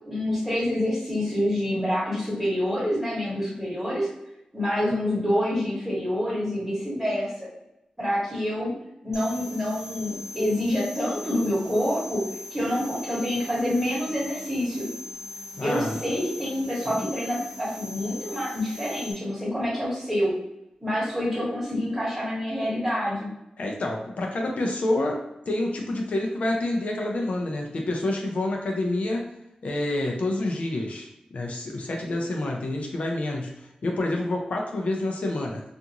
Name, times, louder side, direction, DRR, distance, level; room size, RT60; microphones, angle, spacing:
voice 1, 0.1-4.1 4.5-7.5 8.0-8.7 9.0-14.9 15.6-20.3 20.8-23.3, left 1 dB, 10° right, -8 dB, 1.2 m, -27 dB
sound 1, 9.1-19.1, left 1 dB, 35° right, 0.4 m, -40 dB
voice 2, 15.5-16.0 23.6-29.3 29.6-35.6, left 1 dB, 70° left, 0 dB, 0.5 m, -28 dB
2.5 x 2.4 x 2.8 m, 0.89 s
wide cardioid pair, 90°, 2 cm